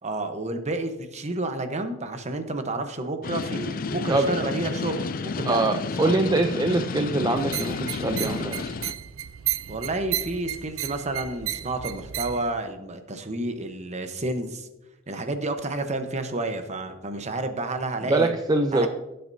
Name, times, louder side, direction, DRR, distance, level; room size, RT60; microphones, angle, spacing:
voice 1, 0.0-5.6 6.0-6.1 9.7-14.7 15.1-18.3 18.7-18.9, right 2 dB, 35° right, 7 dB, 1.0 m, -30 dB
sound 1, 3.2-8.9, left 4 dB, 45° left, 0.4 m, -31 dB
voice 2, 5.5-8.8 18.0-18.9, right 2 dB, 20° right, 5 dB, 0.5 m, -24 dB
sound 2, 7.4-12.5, right 13 dB, 75° right, 0.5 m, -33 dB
17.0 x 7.8 x 2.7 m, 1.0 s
head